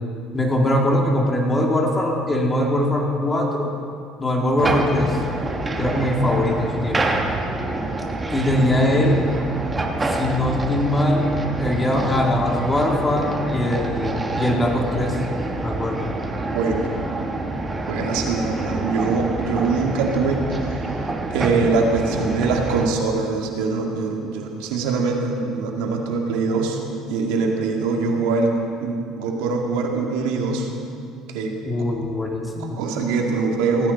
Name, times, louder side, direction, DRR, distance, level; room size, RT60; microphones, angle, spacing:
voice 1, 0.3-3.7 4.2-5.2 5.8-7.2 8.3-9.2 10.1-11.3 11.6-15.2 15.6-16.1 31.6-32.8, left 1 dB, 15° left, 0 dB, 2.4 m, -21 dB
sound 1, 4.6-22.9, right 2 dB, 20° right, 1.3 m, -27 dB
voice 2, 16.5-17.1 17.9-20.9 21.3-26.8 27.1-30.7 31.3-31.6 32.6-33.9, right 4 dB, 85° right, 1 dB, 2.1 m, -23 dB
18.0 x 15.0 x 4.3 m, 2.4 s
cardioid pair, 115°, 0 cm